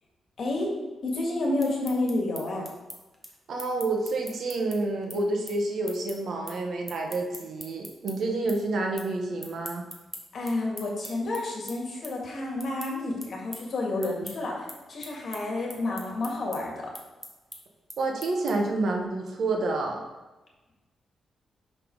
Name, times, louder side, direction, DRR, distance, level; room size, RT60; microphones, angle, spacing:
voice 1, 0.4-0.7 1.0-2.7 10.3-16.9, left 2 dB, 55° left, -1 dB, 1.9 m, -30 dB
sound 1, 1.4-8.1 8.5-9.1 9.4-18.8, equal, 10° right, 1.1 m, -43 dB
voice 2, 3.5-9.8 18.0-20.0, right 2 dB, 65° right, 2 dB, 1.1 m, -29 dB
5.8 x 5.4 x 4.7 m, 1.1 s
cardioid pair, 120°, 0 cm